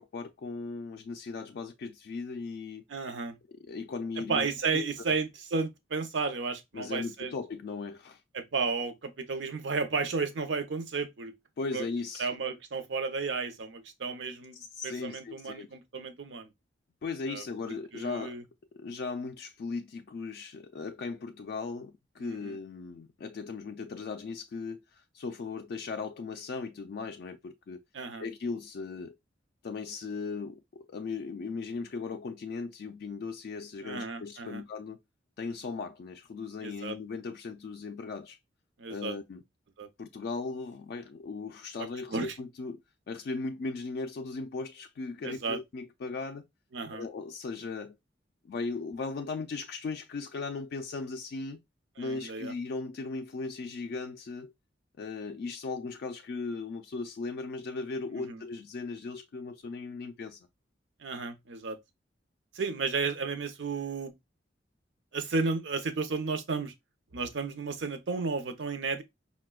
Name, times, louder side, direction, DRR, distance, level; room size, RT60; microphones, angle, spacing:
voice 1, 0.0-2.8 3.5-4.5 4.7-4.9 6.7-8.2 11.6-12.3 14.5-15.7 17.0-18.4 18.7-27.8 28.2-29.1 29.6-35.0 35.4-38.4 38.9-39.4 40.0-42.8 43.1-46.4 46.9-48.0 48.4-51.6 52.0-54.5 55.0-60.5, left 4 dB, 55° left, 0.3 m, -37 dB
voice 2, 2.9-3.4 4.3-7.3 8.3-11.3 11.7-11.9 12.2-14.6 14.8-16.5 17.3-17.4 17.9-18.4 22.2-22.6 27.9-28.2 33.8-34.6 36.6-37.0 38.8-39.1 39.8-39.9 41.8-42.3 45.2-45.6 46.7-47.1 52.0-52.5 58.1-58.4 61.0-61.8 62.5-64.1 65.1-66.7 67.1-69.0, right 4 dB, 75° right, 0.6 m, -33 dB
4.7 x 2.1 x 2.2 m
head